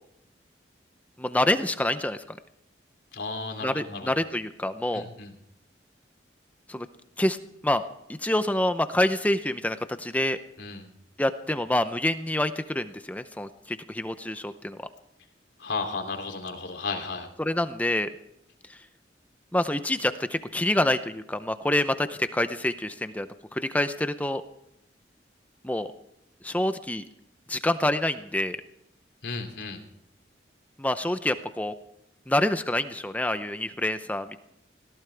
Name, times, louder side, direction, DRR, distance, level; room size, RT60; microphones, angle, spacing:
voice 1, 1.2-2.4 3.6-5.0 6.7-6.9 7.2-7.4 7.6-7.8 8.1-10.4 11.2-14.8 17.4-18.1 18.7-18.8 19.5-23.3 23.5-24.4 25.6-25.9 26.4-27.0 27.5-28.6 30.8-31.7 32.3-34.4, left 1 dB, 10° left, 10 dB, 0.6 m, -27 dB
voice 2, 3.1-4.1 4.9-5.3 10.6-10.9 15.6-17.3 29.2-29.8, left 3 dB, 80° left, 4 dB, 3.0 m, -34 dB
20.5 x 18.0 x 3.4 m, 0.78 s
head